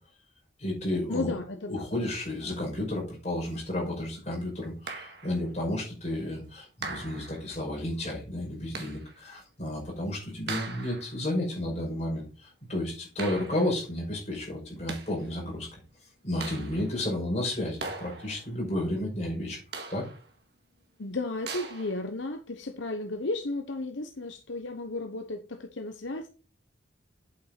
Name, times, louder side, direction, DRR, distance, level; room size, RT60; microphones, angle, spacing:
voice 1, 0.6-1.3 1.7-15.8 16.2-19.6 19.9-20.1, left 1 dB, 35° left, 5.4 m, -32 dB
voice 2, 1.1-1.9 21.0-26.3, left 2 dB, 75° left, 1.0 m, -34 dB
sound 1, 4.9-5.4 6.8-7.5 8.7-9.2 10.5-11.2 13.2-13.8 14.7-15.3 16.4-17.0 17.8-18.5 19.7-20.3 21.5-22.0, right 4 dB, 55° right, 1.8 m, -40 dB
8.7 x 7.7 x 4.0 m
head